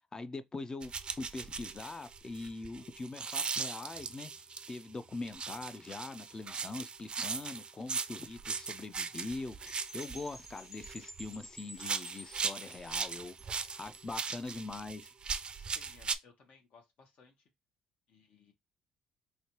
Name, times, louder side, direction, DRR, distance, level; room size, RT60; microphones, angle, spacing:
voice 1, 0.1-4.3 4.7-13.4 13.8-15.1, left 3 dB, 25° left, 0.4 m, -42 dB
sound 1, 0.8-4.8 5.3-11.4 11.7-16.2, right 5 dB, 35° right, 0.4 m, -39 dB
Percussion / Wind chime, 9.7-14.4, equal, 5° left, 0.8 m, -52 dB
voice 2, 13.3-13.6 14.1-14.4 15.5-17.5 18.1-18.5, left 5 dB, 65° left, 1.0 m, -62 dB
3.1 x 2.9 x 2.9 m
supercardioid pair, 75°, 3 cm